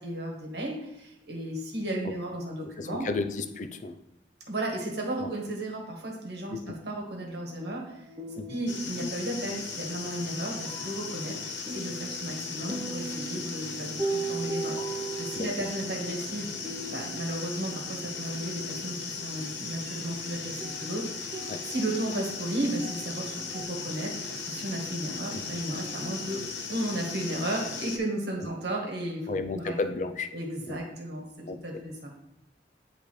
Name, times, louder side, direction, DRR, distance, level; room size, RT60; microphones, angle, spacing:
voice 1, 0.0-3.1 4.5-8.1 8.5-16.5 16.9-21.3 21.6-29.3 29.5-29.8 30.3-32.1, right 1 dB, 65° right, -1 dB, 1.5 m, -34 dB
voice 2, 2.8-4.0 5.2-5.3 6.5-6.7 8.3-8.5 9.0-9.1 15.4-15.5 21.5-21.6 25.3-25.4 29.3-30.3 30.7-30.8 31.5-31.6, left 3 dB, 40° left, 7 dB, 0.5 m, -32 dB
sound 1, 7.3-19.2 20.1-20.2 20.6-23.6, right 3 dB, 20° right, 0.6 m, -40 dB
sound 2, 8.7-28.0, left 4 dB, 90° left, 1.0 m, -37 dB
10.5 x 3.4 x 3.2 m, 0.85 s
head